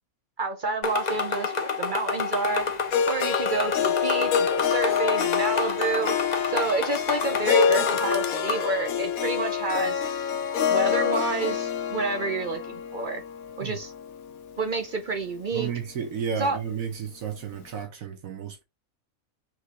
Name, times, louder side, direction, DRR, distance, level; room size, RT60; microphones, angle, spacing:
voice 1, 0.4-2.7 3.0-6.2 6.5-10.1 10.7-13.2 13.6-13.9 14.6-15.7 16.4-16.6, right 3 dB, 50° right, 0.6 m, -29 dB
sound 1, 0.8-8.7, left 5 dB, 45° left, 0.6 m, -30 dB
Harp, 2.9-15.1, left 7 dB, 80° left, 1.1 m, -27 dB
voice 2, 15.5-18.6, right 7 dB, 75° right, 1.2 m, -32 dB
4.6 x 3.4 x 2.9 m
omnidirectional pair, 1.5 m